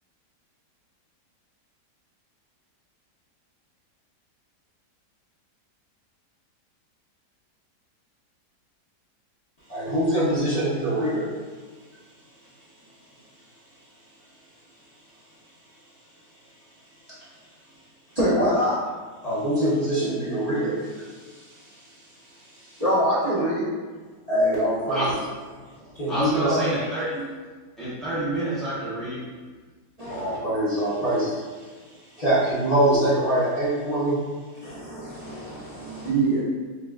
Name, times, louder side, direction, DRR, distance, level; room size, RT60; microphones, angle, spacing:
voice 1, 9.7-11.3 19.2-21.9 22.5-22.8 24.3-25.2 26.0-26.7 30.1-31.7 32.2-34.2, right 1 dB, 35° left, -12 dB, 0.7 m, -24 dB
voice 2, 18.1-18.8 22.8-23.6 25.8-26.2 30.0-30.4 34.6-36.4, right 1 dB, 30° right, -11 dB, 0.7 m, -25 dB
voice 3, 26.1-27.2 27.8-29.2, right 1 dB, ahead, -12 dB, 0.3 m, -28 dB
5.5 x 2.5 x 2.3 m, 1.4 s
omnidirectional pair, 1.8 m